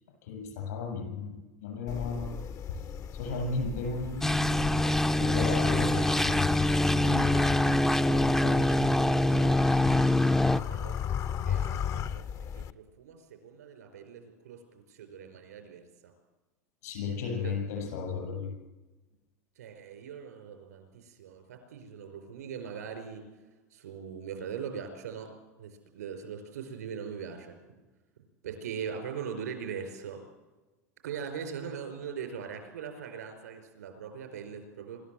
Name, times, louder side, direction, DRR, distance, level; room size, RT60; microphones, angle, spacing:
voice 1, 0.2-2.4 3.1-4.8 5.2-9.5 16.8-18.5, left 4 dB, 80° left, 2 dB, 7.4 m, -36 dB
sound 1, 1.9-12.7, left 8 dB, 40° left, 0.7 m, -35 dB
sound 2, 4.2-10.6, left 1 dB, 5° left, 0.6 m, -25 dB
voice 2, 7.0-7.5 10.5-11.1 11.4-12.3 12.5-14.6 14.9-16.1 17.4-17.5 19.6-23.2 23.7-25.3 25.6-27.8 28.4-30.2 31.0-35.0, right 7 dB, 90° right, 6 dB, 5.1 m, -41 dB
26.0 x 13.0 x 7.8 m, 1.2 s
hypercardioid pair, 95°, 9 cm